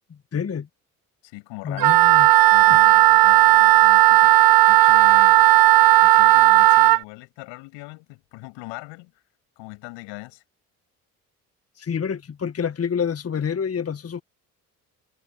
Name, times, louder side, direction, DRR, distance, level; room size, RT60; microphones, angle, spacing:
voice 1, 0.3-0.7 1.6-2.3 2.7-2.8 11.8-14.2, left 7 dB, 30° left, 1.6 m, -27 dB
voice 2, 1.2-2.0 2.5-4.4 4.7-5.5 6.0-9.1 9.6-10.4, left 25 dB, 70° left, 7.9 m, -40 dB
Wind instrument woodwind instrument, 1.8-7.0, right 17 dB, 50° right, 0.7 m, -14 dB
hypercardioid pair, 50°, 45 cm